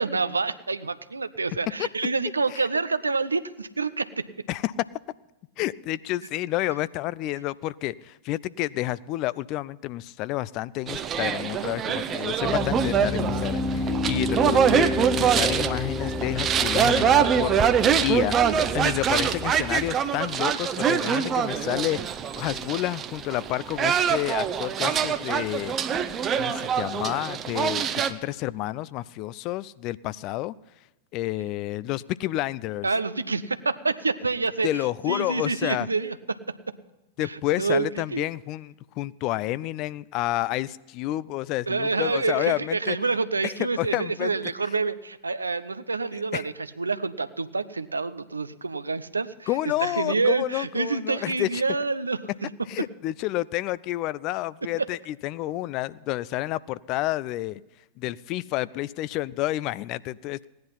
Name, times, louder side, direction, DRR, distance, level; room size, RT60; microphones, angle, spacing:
voice 1, 0.0-4.2 32.8-36.4 37.2-38.2 41.7-49.5 49.8-52.5 54.8-54.9, right 4 dB, 80° right, 14 dB, 0.7 m, -27 dB
voice 2, 5.6-18.4 18.7-25.8 26.3-30.5 31.1-32.9 34.6-35.9 37.2-43.0 43.4-44.3 46.3-46.5 49.5-51.6 52.7-57.6 58.0-60.5, left 16 dB, 40° left, 18 dB, 0.4 m, -30 dB
sound 1, 10.9-28.1, right 8 dB, 25° right, 0.8 m, -24 dB
Piano, 12.4-19.9, left 2 dB, 20° left, 0.9 m, -30 dB
17.0 x 10.5 x 5.6 m, 1.0 s
figure-of-eight pair, 90°, 0 cm